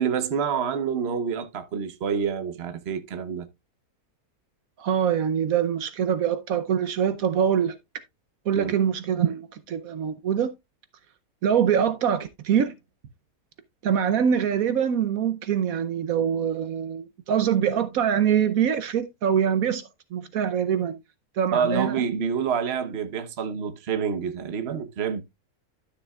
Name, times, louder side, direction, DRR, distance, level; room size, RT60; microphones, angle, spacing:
voice 1, 0.0-3.5 8.5-8.8 21.5-25.2, right 7 dB, 50° right, 1.1 m, -27 dB
voice 2, 4.8-7.7 8.5-10.5 11.4-12.8 13.8-21.0 21.4-21.9, right 8 dB, 70° right, 1.2 m, -24 dB
12.5 x 6.5 x 2.3 m
omnidirectional pair, 1.6 m